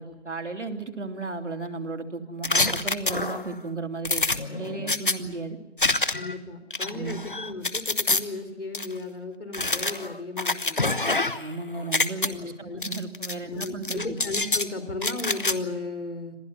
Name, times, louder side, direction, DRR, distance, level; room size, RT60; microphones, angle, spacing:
voice 1, 0.0-5.6 6.9-7.2 11.4-14.2, right 3 dB, 80° right, 5 dB, 3.1 m, -34 dB
sound 1, 2.4-3.5 4.0-5.1 5.8-6.3 6.7-8.2 8.7-8.9 9.5-11.5 11.8-12.3 12.8-13.3 13.6-14.7 15.0-15.5, left 2 dB, 45° left, 1.1 m, -26 dB
voice 2, 6.2-11.1 12.2-12.8 13.5-16.4, left 3 dB, 70° left, 6 dB, 3.3 m, -35 dB
27.0 x 16.0 x 9.5 m, 0.91 s
figure-of-eight pair, 180°, 36 cm